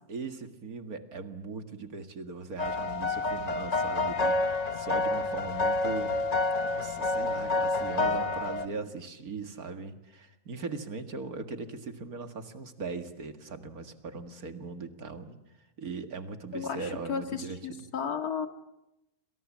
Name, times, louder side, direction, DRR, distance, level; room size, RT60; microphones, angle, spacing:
voice 1, 0.1-6.1 6.6-15.4 15.8-17.8, right 4 dB, 70° right, 7 dB, 2.4 m, -39 dB
sound 1, 2.6-8.7, left 3 dB, 30° left, 1.1 m, -28 dB
voice 2, 16.5-18.5, left 6 dB, 75° left, 7 dB, 2.3 m, -34 dB
29.5 x 26.5 x 7.4 m, 0.91 s
omnidirectional pair, 1.6 m